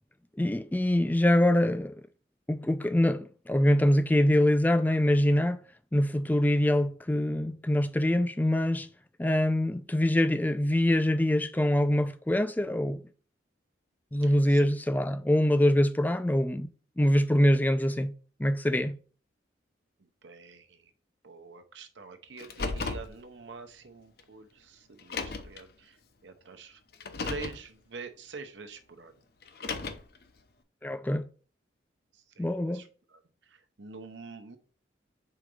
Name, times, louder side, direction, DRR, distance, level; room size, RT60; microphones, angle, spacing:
voice 1, 0.4-1.9 2.5-5.6 5.9-8.9 9.2-13.0 14.1-16.7 17.0-18.1 18.4-19.0 30.8-31.3 32.4-32.8, left 1 dB, 10° left, 0.3 m, -24 dB
voice 2, 14.2-14.7 20.0-20.9 21.2-26.8 27.2-29.1 32.1-34.6, right 4 dB, 75° right, 0.8 m, -46 dB
Car, 22.4-23.1 24.2-24.3 25.0-25.6 26.9-27.6 29.4-30.2, left 3 dB, 55° left, 0.6 m, -34 dB
4.9 x 3.9 x 4.9 m
head